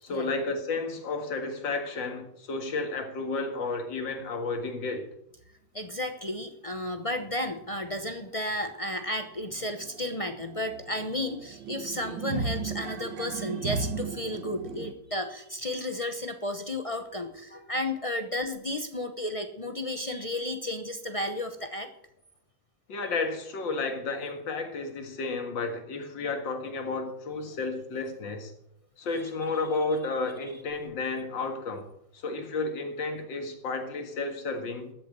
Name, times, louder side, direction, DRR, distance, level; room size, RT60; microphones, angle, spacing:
voice 1, 0.0-5.1 22.9-28.5 29.0-31.9 32.1-34.9, left 3 dB, 75° left, 2.5 m, -32 dB
voice 2, 5.7-21.9, left 1 dB, 40° left, 0.5 m, -33 dB
sound 1, 8.5-8.6 8.9-14.9, right 5 dB, 75° right, 1.7 m, -36 dB
13.5 x 7.3 x 7.6 m
omnidirectional pair, 2.1 m